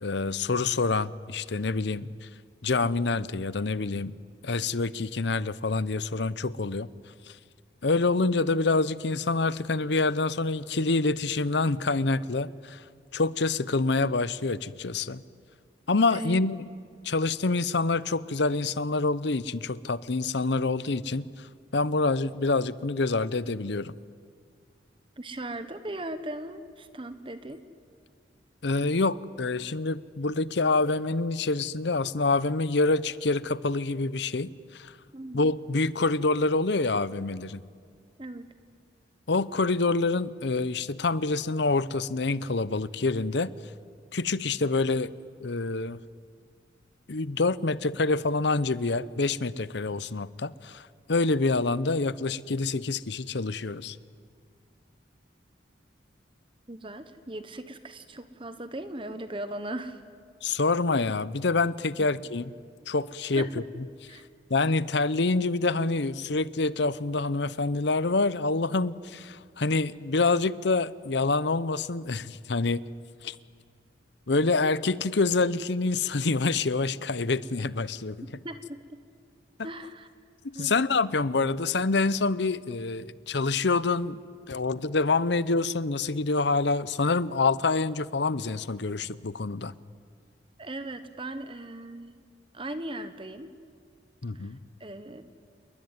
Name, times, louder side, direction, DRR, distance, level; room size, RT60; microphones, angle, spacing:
voice 1, 0.0-2.3 2.6-4.1 4.4-6.9 7.3-7.4 7.8-12.8 13.1-15.2 15.9-16.6 17.0-23.9 28.6-35.0 35.3-37.6 39.3-43.5 44.1-45.1 45.4-46.0 47.1-54.0 60.4-62.5 62.9-63.5 64.1-64.2 64.5-72.8 73.2-73.4 74.3-78.2 80.6-84.2 84.5-89.7 94.2-94.6, left 3 dB, 65° left, 17 dB, 0.8 m, -26 dB
voice 2, 16.1-16.4 25.2-27.6 35.1-35.4 38.2-38.5 56.7-60.0 62.0-62.1 63.3-63.7 64.1-64.2 78.4-79.0 79.6-80.1 80.5-80.7 90.6-92.2 92.5-93.5 94.3-95.3, right 1 dB, 25° right, 10 dB, 1.2 m, -38 dB
28.5 x 21.5 x 9.6 m, 2.1 s
head